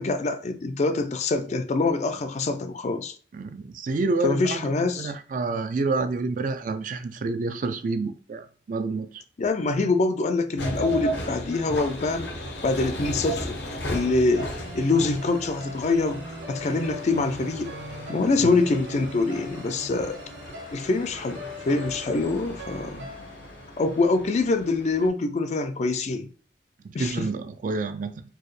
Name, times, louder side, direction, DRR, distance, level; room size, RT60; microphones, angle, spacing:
voice 1, 0.0-3.2 4.2-5.1 9.4-12.3 12.6-13.6 13.9-17.8 18.1-20.2 20.7-23.1 23.8-26.3 26.9-27.3, left 3 dB, 40° left, 0.4 m, -25 dB
voice 2, 3.3-9.2 18.4-18.6 27.0-28.2, right 3 dB, 45° right, 0.3 m, -28 dB
sound 1, 10.6-25.1, equal, 75° left, 0.8 m, -36 dB
sound 2, 14.4-24.6, equal, 70° right, 0.9 m, -41 dB
4.5 x 2.1 x 3.1 m
head